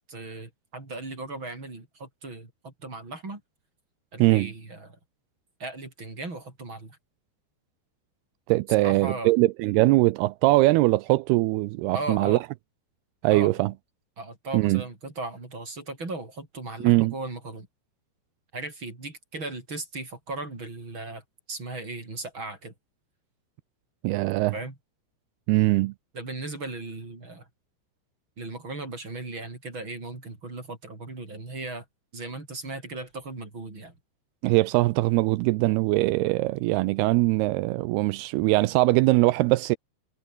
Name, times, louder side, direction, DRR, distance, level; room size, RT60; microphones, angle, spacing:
voice 1, 0.0-3.4 4.1-5.0 5.6-7.0 8.7-9.3 11.9-12.4 13.3-13.7 14.2-17.7 18.5-21.2 21.5-22.7 24.5-24.7 26.1-27.5 28.4-31.8 32.1-33.9, right 2 dB, 25° right, 6.0 m, -37 dB
voice 2, 4.2-4.5 8.5-12.4 13.2-13.7 14.5-14.8 16.8-17.1 24.0-24.5 25.5-25.9 34.4-39.8, right 20 dB, 85° right, 2.3 m, -21 dB
omnidirectional pair, 5.1 m